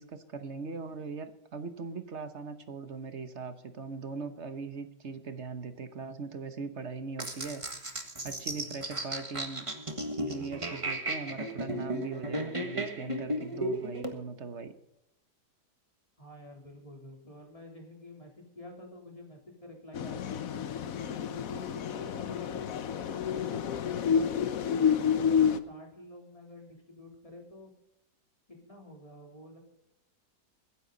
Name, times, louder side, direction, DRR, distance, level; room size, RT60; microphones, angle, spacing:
voice 1, 0.0-9.6 10.1-14.7, right 4 dB, 45° right, 10 dB, 1.3 m, -40 dB
sound 1, 7.2-14.1, right 1 dB, 20° right, 1.5 m, -35 dB
voice 2, 16.2-20.5 21.3-24.3 24.6-27.7 28.5-29.6, left 1 dB, 20° left, 1 dB, 3.5 m, -49 dB
sound 2, 19.9-25.6, left 7 dB, 60° left, 1.2 m, -29 dB
22.5 x 10.5 x 4.1 m, 0.85 s
omnidirectional pair, 1.8 m